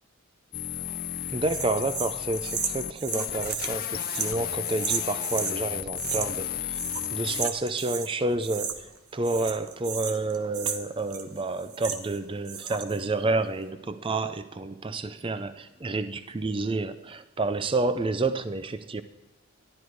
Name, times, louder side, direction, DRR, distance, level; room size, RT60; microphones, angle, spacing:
sound 1, 0.5-7.5, left 11 dB, 40° left, 0.6 m, -33 dB
voice 1, 1.3-6.8 7.1-19.0, right 2 dB, 25° right, 0.4 m, -29 dB
sound 2, 1.5-5.6 6.0-6.5 6.7-8.1 8.4-9.0 9.2-12.2 12.4-13.0, right 7 dB, 90° right, 1.1 m, -34 dB
12.5 x 11.5 x 4.6 m
head